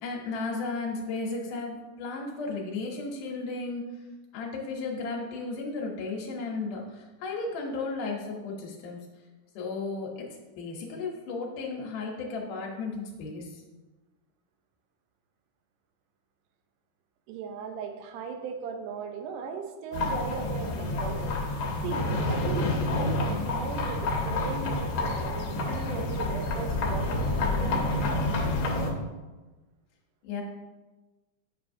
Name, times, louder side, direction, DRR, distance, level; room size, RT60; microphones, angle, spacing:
voice 1, 0.0-4.0 4.3-9.0 9.6-10.3 10.6-13.6 30.2-30.4, left 3 dB, 85° left, -2 dB, 2.4 m, -34 dB
voice 2, 17.3-21.4 21.8-28.2, right 5 dB, 85° right, 5 dB, 2.2 m, -38 dB
sound 1, 19.9-28.9, left 2 dB, 65° left, 1.8 m, -28 dB
7.8 x 5.6 x 2.6 m, 1.2 s
omnidirectional pair, 3.6 m